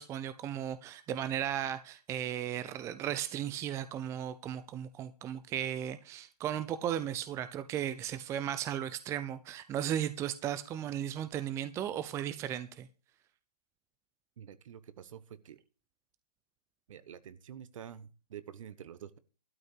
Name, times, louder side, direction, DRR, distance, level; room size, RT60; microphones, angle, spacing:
voice 1, 0.0-12.9, right 10 dB, 15° right, 0.6 m, -36 dB
voice 2, 14.4-15.6 16.9-19.2, right 9 dB, 55° right, 1.2 m, -48 dB
12.5 x 5.2 x 8.5 m
hypercardioid pair, 135°, 20 cm